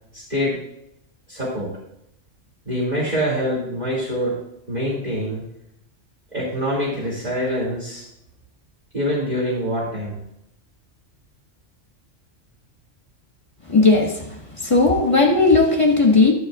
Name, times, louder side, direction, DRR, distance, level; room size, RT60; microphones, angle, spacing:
voice 1, 0.1-0.6 1.3-1.7 2.7-4.4 4.7-5.4 6.3-8.0 8.9-10.2, equal, 35° right, -7 dB, 2.8 m, -25 dB
voice 2, 13.7-14.2 14.6-16.3, left 3 dB, 25° left, 0 dB, 1.5 m, -16 dB
12.5 x 11.5 x 2.5 m, 0.80 s
omnidirectional pair, 1.3 m